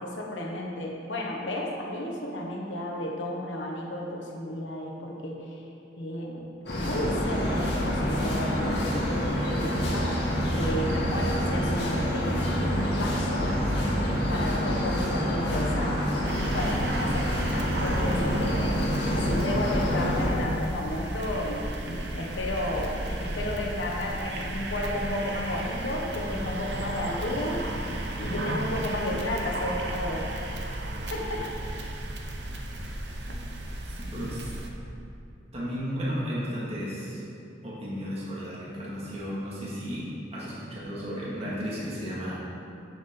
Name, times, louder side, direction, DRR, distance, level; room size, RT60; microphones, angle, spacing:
voice 1, 0.0-5.6 5.9-6.4 6.8-10.2 10.5-13.5 14.3-16.0 16.5-18.8 19.3-27.6 28.2-30.3 31.1-31.5 33.3-33.4, left 1 dB, 85° left, -1 dB, 1.2 m, -33 dB
sound 1, 6.7-20.3, equal, 65° left, 1.8 m, -27 dB
sound 2, 16.2-34.7, right 1 dB, 65° right, 0.9 m, -34 dB
voice 2, 34.0-34.5 35.5-37.2 37.6-42.4, equal, 35° right, -8 dB, 2.1 m, -34 dB
9.8 x 7.3 x 3.8 m, 2.6 s
head